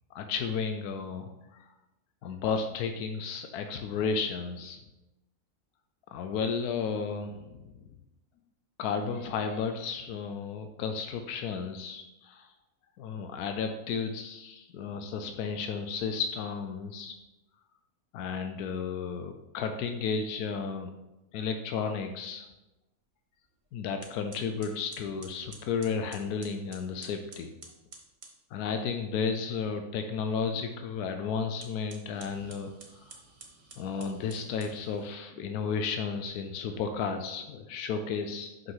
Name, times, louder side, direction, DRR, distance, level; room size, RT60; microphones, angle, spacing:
voice 1, 0.1-1.7 2.2-4.8 6.1-7.8 8.8-12.5 13.0-17.2 18.1-20.9 21.3-22.5 23.7-27.5 28.5-33.1 33.8-38.7, left 5 dB, 90° left, 6 dB, 1.1 m, -33 dB
sound 1, 23.5-23.6 24.0-28.4 31.5-35.2, right 3 dB, 45° right, 1.3 m, -51 dB
5.8 x 5.3 x 5.5 m, 0.99 s
omnidirectional pair, 1.6 m